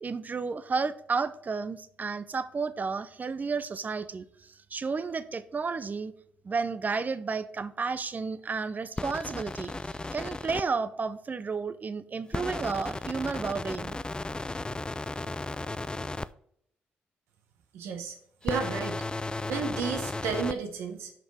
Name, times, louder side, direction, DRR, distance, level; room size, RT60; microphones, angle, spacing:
voice 1, 0.0-6.1 6.4-9.7 10.1-14.0, right 4 dB, 40° right, 14 dB, 0.7 m, -32 dB
sound 1, 9.0-10.6 12.3-16.3 18.4-20.6, left 2 dB, 20° left, 0.4 m, -35 dB
voice 2, 17.7-18.1 18.4-19.0 19.5-21.1, right 5 dB, 85° right, 4 dB, 1.2 m, -32 dB
6.1 x 5.3 x 4.8 m, 0.69 s
supercardioid pair, 55°, 4 cm